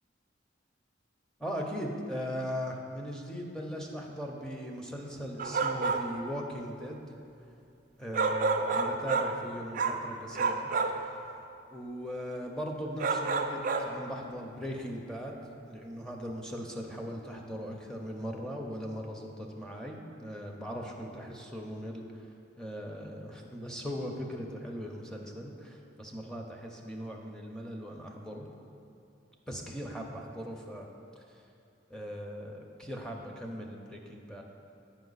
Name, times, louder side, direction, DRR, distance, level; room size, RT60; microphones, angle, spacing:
voice 1, 1.4-7.0 8.0-10.7 11.7-15.4 15.7-22.0 22.6-28.5 29.5-30.9 31.9-34.4, equal, 5° left, 0 dB, 0.6 m, -39 dB
sound 1, 5.4-6.2 8.1-9.4 9.7-10.1 10.3-11.1 13.0-14.0, right 4 dB, 45° right, 0.4 m, -29 dB
8.3 x 5.3 x 4.0 m, 2.6 s
head